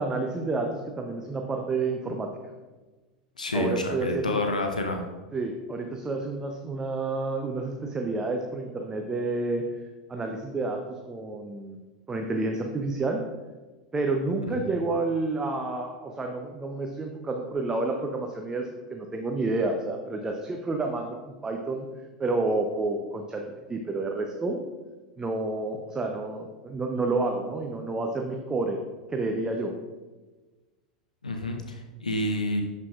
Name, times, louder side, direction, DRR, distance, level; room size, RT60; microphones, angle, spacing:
voice 1, 0.0-2.3 3.5-4.4 5.3-9.6 10.1-11.8 12.1-13.2 13.9-21.9 22.2-23.4 23.7-24.6 25.2-28.8 29.1-29.7, right 3 dB, 15° right, 2 dB, 0.6 m, -29 dB
voice 2, 3.4-5.1 14.5-14.6 31.2-32.6, left 1 dB, 80° left, 4 dB, 0.6 m, -29 dB
11.0 x 4.7 x 2.4 m, 1.2 s
figure-of-eight pair, 85°, 4 cm